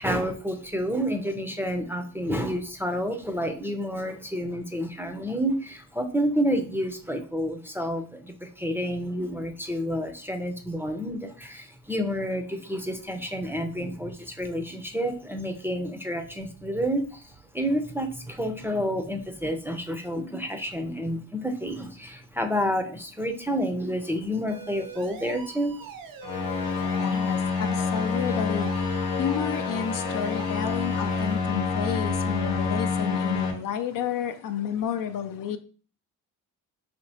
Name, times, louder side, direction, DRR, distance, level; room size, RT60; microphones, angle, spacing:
voice 1, 0.0-25.7 26.7-27.2 30.0-30.1, equal, 5° right, 0.5 m, -29 dB
sound 1, 24.5-31.3, right 7 dB, 65° right, 0.7 m, -43 dB
sound 2, 26.2-33.5, left 4 dB, 90° left, 0.8 m, -27 dB
voice 2, 27.0-35.6, left 9 dB, 65° left, 0.5 m, -31 dB
4.2 x 2.9 x 2.8 m
cardioid pair, 90°, 36 cm